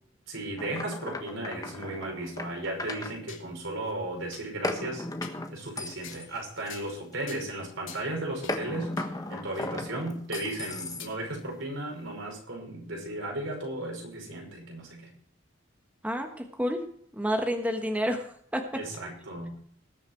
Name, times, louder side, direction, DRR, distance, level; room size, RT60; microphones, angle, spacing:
voice 1, 0.3-5.1 5.5-15.1 18.7-19.6, right 1 dB, 75° right, 0 dB, 5.6 m, -35 dB
sound 1, 0.6-3.1 4.6-7.3 8.5-11.3, left 2 dB, 20° left, 1.4 m, -36 dB
sound 2, 3.3-3.5 3.9-4.0 4.3-4.4 5.2-5.4 6.0-6.3 6.7-7.0 7.3-7.5 7.9-8.1 8.4-8.6 9.0-9.1 9.6-9.7 10.3-10.5 11.0-11.1, left 9 dB, 85° left, 2.6 m, -45 dB
voice 2, 16.0-16.8 17.1-18.7, equal, 5° right, 4 dB, 1.3 m, -29 dB
19.5 x 7.0 x 4.6 m, 0.64 s
head